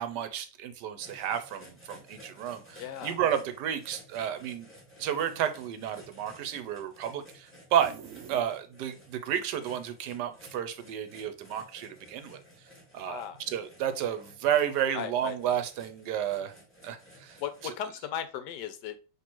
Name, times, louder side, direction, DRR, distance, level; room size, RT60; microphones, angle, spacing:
voice 1, 0.0-4.7 5.0-7.9 8.3-12.4 12.9-16.5 16.8-17.4 17.6-17.7, right 9 dB, 75° right, 9 dB, 1.1 m, -31 dB
sound 1, 1.0-17.7, equal, 5° left, 1.6 m, -54 dB
voice 2, 2.8-3.2 13.0-13.4 14.9-15.4 17.4-19.0, left 9 dB, 75° left, 10 dB, 1.1 m, -36 dB
sound 2, 7.8-9.0, right 8 dB, 90° right, 0.6 m, -46 dB
5.9 x 3.0 x 3.0 m, 0.33 s
omnidirectional pair, 1.9 m